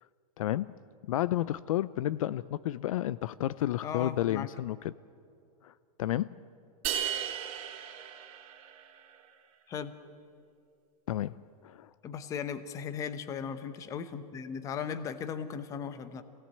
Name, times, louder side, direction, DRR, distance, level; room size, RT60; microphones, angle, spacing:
voice 1, 0.4-0.7 1.1-4.9 5.6-5.7 6.0-6.4 11.1-11.3 11.6-11.9, left 13 dB, 60° left, 19 dB, 0.5 m, -31 dB
voice 2, 3.8-4.5 9.7-9.9 12.0-16.2, left 7 dB, 15° left, 13 dB, 0.8 m, -37 dB
sound 1, 6.8-9.1, right 9 dB, 35° right, 3.2 m, -36 dB
24.5 x 17.5 x 9.0 m, 2.4 s
supercardioid pair, 170°, 20 cm